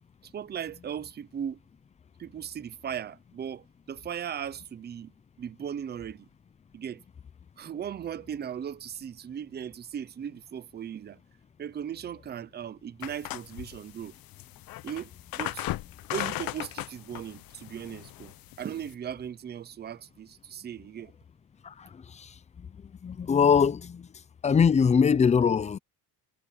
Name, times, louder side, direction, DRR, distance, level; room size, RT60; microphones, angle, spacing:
voice 1, 0.3-1.6 2.2-5.1 5.4-6.3 6.7-7.0 7.6-11.2 11.6-14.1 14.8-15.7 16.1-21.1, right 9 dB, 25° right, 0.6 m, -37 dB
sound 1, 13.0-18.9, left 16 dB, 65° left, 0.7 m, -37 dB
voice 2, 21.6-22.3 22.6-22.7 23.0-24.1 24.4-25.8, left 6 dB, 20° left, 0.4 m, -23 dB
cardioid pair, 175°, 38 cm